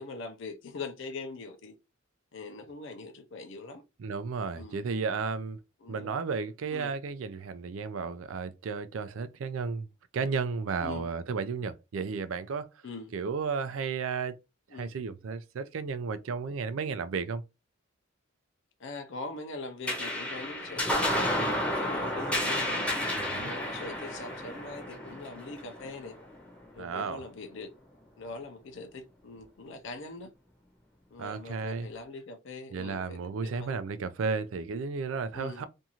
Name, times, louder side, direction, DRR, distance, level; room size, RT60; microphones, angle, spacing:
voice 1, 0.0-1.8 2.3-3.8 4.6-4.8 5.8-6.1 6.7-6.9 10.8-11.1 12.8-13.1 14.7-14.9 18.8-22.9 23.4-26.2 26.7-27.7 28.2-30.3 31.1-33.8 35.3-35.7, left 3 dB, 65° left, 0.5 m, -42 dB
voice 2, 4.0-5.6 5.9-9.9 10.1-12.7 13.1-14.4 14.7-17.4 23.2-23.5 26.8-27.3 31.2-31.9 32.7-35.7, right 5 dB, 80° right, 0.4 m, -33 dB
sound 1, 19.9-26.6, left 1 dB, 5° left, 0.7 m, -31 dB
2.6 x 2.4 x 2.8 m
head